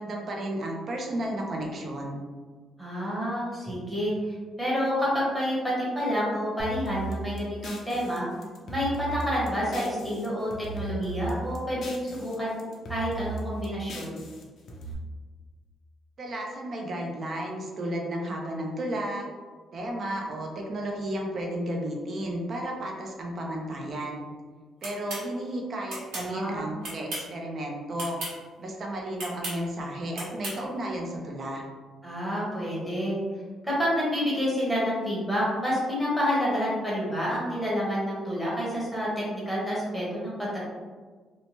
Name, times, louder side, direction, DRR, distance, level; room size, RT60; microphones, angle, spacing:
voice 1, 0.0-2.2 16.2-19.3 19.7-24.3 24.8-28.2 28.6-31.6, right 1 dB, 40° right, 0 dB, 0.4 m, -33 dB
voice 2, 2.8-8.3 8.7-12.6 12.9-14.2 26.2-26.6 32.0-33.2 33.6-40.6, equal, 5° right, -7 dB, 0.9 m, -28 dB
sound 1, 6.6-10.3 10.5-12.3 12.6-14.9, right 2 dB, 55° left, 0.5 m, -37 dB
sound 2, 24.8-25.2 25.9-26.3 26.8-27.3 27.9-28.3 29.2-29.6 30.1-30.6, right 2 dB, 80° right, 1.1 m, -35 dB
2.8 x 2.1 x 2.9 m, 1.4 s
cardioid pair, 155°, 0 cm